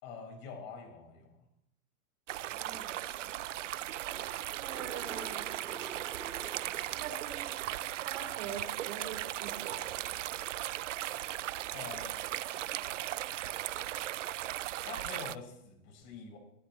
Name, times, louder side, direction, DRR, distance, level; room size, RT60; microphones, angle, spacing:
voice 1, 0.0-1.4 11.1-11.2 11.7-12.2 14.8-16.4, left 5 dB, 30° left, 3 dB, 5.1 m, -45 dB
voice 2, 2.3-3.3 4.5-5.6 6.9-10.2, right 7 dB, 40° right, 4 dB, 3.9 m, -44 dB
sound 1, 2.3-15.4, right 14 dB, 55° right, 0.6 m, -37 dB
sound 2, 4.0-7.3 7.7-8.0, right 4 dB, 5° right, 0.9 m, -48 dB
20.0 x 19.5 x 3.1 m, 0.78 s
supercardioid pair, 175°, 44 cm